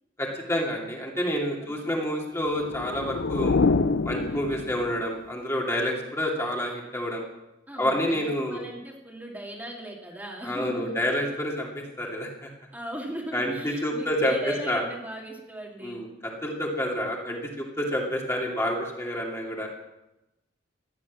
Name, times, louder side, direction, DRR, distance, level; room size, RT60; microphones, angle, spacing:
voice 1, 0.2-3.6 4.0-7.2 7.8-8.6 10.4-12.5 13.3-14.8 15.8-19.7, equal, 15° left, -2 dB, 2.7 m, -28 dB
voice 2, 1.6-1.9 4.1-4.5 7.7-11.0 12.7-16.0, right 1 dB, 10° right, -2 dB, 2.5 m, -38 dB
sound 1, 2.5-5.1, left 4 dB, 70° left, 0.6 m, -26 dB
16.0 x 11.0 x 7.3 m, 0.95 s
head